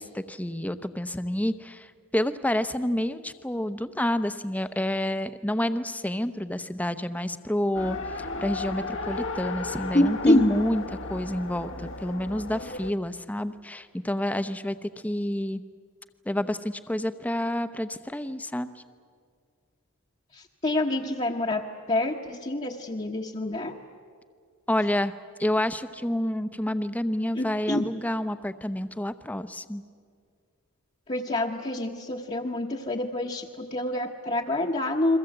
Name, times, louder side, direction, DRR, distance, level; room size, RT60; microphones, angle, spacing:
voice 1, 0.0-15.6 16.3-18.8 24.7-25.1 25.4-29.8, left 1 dB, 5° left, 11 dB, 0.7 m, -29 dB
Race car auto racing, 7.7-12.9, left 3 dB, 60° left, 1.2 m, -35 dB
voice 2, 9.9-10.5 20.6-23.8 27.4-27.8 31.1-35.2, left 1 dB, 30° left, -2 dB, 1.1 m, -26 dB
30.0 x 22.5 x 7.9 m, 2.1 s
head